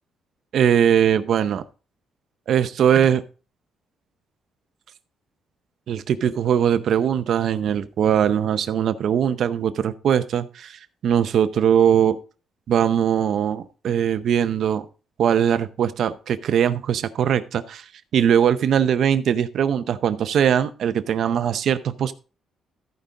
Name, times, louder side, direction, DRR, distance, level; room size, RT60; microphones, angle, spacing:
voice 1, 0.5-1.6 2.5-3.2 5.9-10.8 11.0-12.2 12.7-14.8 15.2-17.8 18.1-22.1, right 8 dB, 60° right, 12 dB, 0.6 m, -20 dB
14.0 x 5.2 x 3.7 m, 0.36 s
cardioid pair, 145°, 0 cm